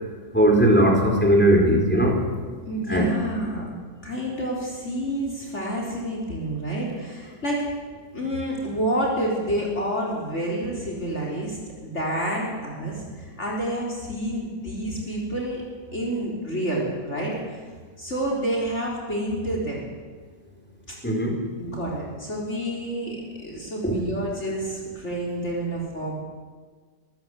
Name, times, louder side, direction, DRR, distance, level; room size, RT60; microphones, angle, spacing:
voice 1, 0.3-2.2 2.9-3.1 21.0-21.4 23.8-24.0, right 1 dB, 5° left, 0 dB, 4.7 m, -18 dB
voice 2, 2.7-3.7 4.0-7.6 8.1-11.6 11.8-13.0 13.4-15.6 15.9-17.3 18.0-19.8 20.9-21.0 21.6-23.2 23.4-26.1, right 1 dB, 40° left, -2 dB, 4.3 m, -28 dB
25.5 x 15.0 x 8.2 m, 1.5 s
omnidirectional pair, 1.9 m